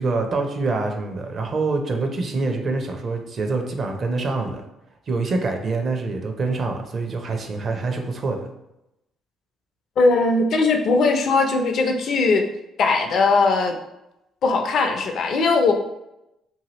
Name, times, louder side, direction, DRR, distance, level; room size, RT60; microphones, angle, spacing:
voice 1, 0.0-4.6 5.1-8.5, right 3 dB, 50° right, 4 dB, 0.6 m, -25 dB
voice 2, 10.0-12.5 12.8-13.7 14.4-15.7, left 3 dB, 60° left, 4 dB, 0.4 m, -19 dB
2.8 x 2.6 x 2.9 m, 0.87 s
hypercardioid pair, 55°, 0 cm